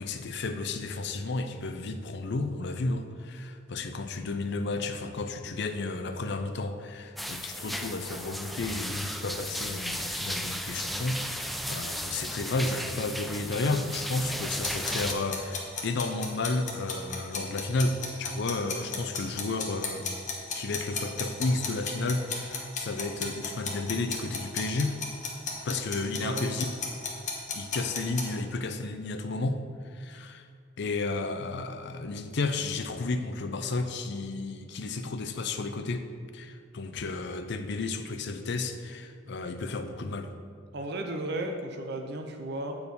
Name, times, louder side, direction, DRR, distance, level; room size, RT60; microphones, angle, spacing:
voice 1, 0.0-20.1 20.5-25.0 25.6-26.7 27.5-29.6 29.9-30.5 30.8-36.1 36.3-40.3, left 3 dB, 65° left, 7 dB, 0.6 m, -32 dB
sound 1, 7.2-15.1, equal, ahead, 0.3 m, -35 dB
sound 2, 14.6-28.3, left 5 dB, 40° left, 1.3 m, -34 dB
voice 2, 26.1-26.7 40.7-42.8, right 2 dB, 60° right, 4 dB, 0.6 m, -34 dB
8.2 x 4.7 x 5.3 m, 2.1 s
head